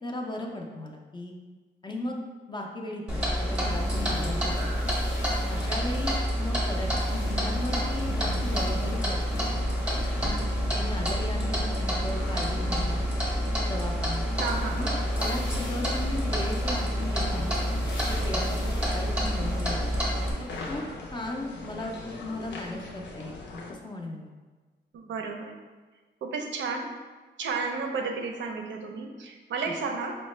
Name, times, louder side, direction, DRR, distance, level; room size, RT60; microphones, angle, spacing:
voice 1, 0.0-1.3 1.8-2.2 2.5-4.7 5.3-9.4 10.2-10.5 10.7-13.0 13.6-14.3 14.8-17.5 18.1-19.8 20.4-20.8 21.1-23.4 23.7-24.3 29.6-29.7, left 1 dB, 25° left, 1 dB, 0.3 m, -36 dB
Clock, 3.1-20.3, equal, 5° right, 0.7 m, -28 dB
sound 1, 3.5-10.9 11.2-11.3 13.8-13.9 14.1-20.8 21.4-21.5 22.6-22.7, left 1 dB, 90° left, 0.9 m, -46 dB
sound 2, 6.7-23.7, left 2 dB, 70° left, 0.6 m, -42 dB
voice 2, 14.4-15.0 24.9-25.5 26.2-26.9 27.4-30.2, right 4 dB, 80° right, 3 dB, 0.5 m, -32 dB
4.7 x 2.1 x 3.1 m, 1.3 s
wide cardioid pair, 170°, 19 cm